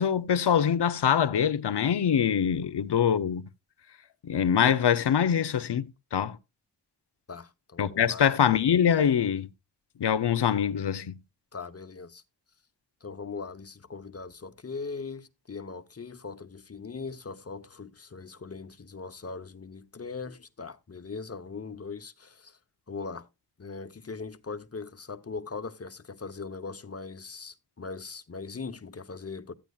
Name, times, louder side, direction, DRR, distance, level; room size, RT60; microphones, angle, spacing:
voice 1, 0.0-3.4 4.2-6.4 7.8-9.5 10.0-11.1, left 8 dB, 75° left, 0.8 m, -24 dB
voice 2, 7.3-8.3 11.5-12.2 13.0-22.6 22.9-23.3 23.6-29.5, left 4 dB, 35° left, 0.9 m, -40 dB
13.0 x 9.2 x 2.3 m
cardioid pair, 45°, 42 cm